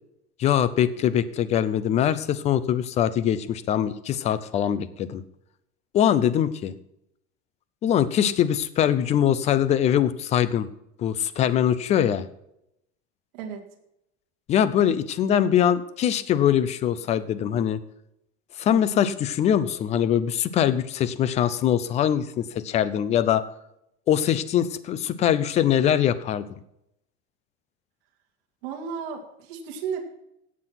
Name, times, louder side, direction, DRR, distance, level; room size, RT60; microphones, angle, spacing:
voice 1, 0.4-5.2 5.9-6.7 7.8-10.7 11.0-12.2 14.5-17.8 18.6-23.4 24.1-26.5, left 10 dB, 20° left, 15 dB, 0.5 m, -22 dB
voice 2, 13.3-13.6 28.6-30.0, right 6 dB, 65° right, 1 dB, 2.7 m, -33 dB
17.0 x 6.1 x 5.8 m, 0.81 s
cardioid pair, 170°, 33 cm